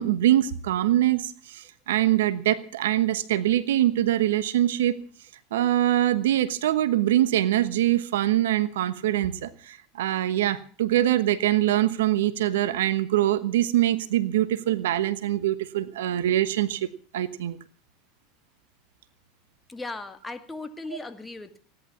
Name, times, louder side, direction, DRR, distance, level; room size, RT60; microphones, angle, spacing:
voice 1, 0.0-5.0 5.5-16.9 17.1-17.6, right 13 dB, 75° right, 15 dB, 1.1 m, -23 dB
voice 2, 19.7-21.6, left 2 dB, 15° left, 9 dB, 2.2 m, -37 dB
16.5 x 11.0 x 7.1 m, 0.42 s
hypercardioid pair, 90°, 0 cm